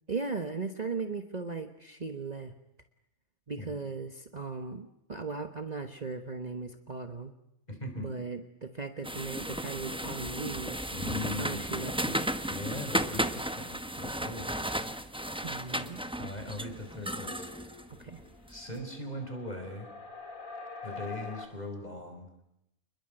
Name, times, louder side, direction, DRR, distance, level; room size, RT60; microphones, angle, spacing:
voice 1, 0.1-2.5 3.5-7.3 8.0-10.9 11.4-12.3 15.4-16.0 17.9-18.2, right 4 dB, 35° right, 7 dB, 1.3 m, -37 dB
voice 2, 7.7-8.1 10.9-11.9 12.5-14.9 16.2-17.5 18.5-19.9 20.8-22.3, left 1 dB, 30° left, 5 dB, 5.4 m, -40 dB
sound 1, 9.0-18.6, right 1 dB, 5° right, 1.0 m, -34 dB
sound 2, 11.1-21.5, left 4 dB, 85° left, 3.8 m, -48 dB
28.5 x 21.5 x 7.9 m, 0.80 s
omnidirectional pair, 1.4 m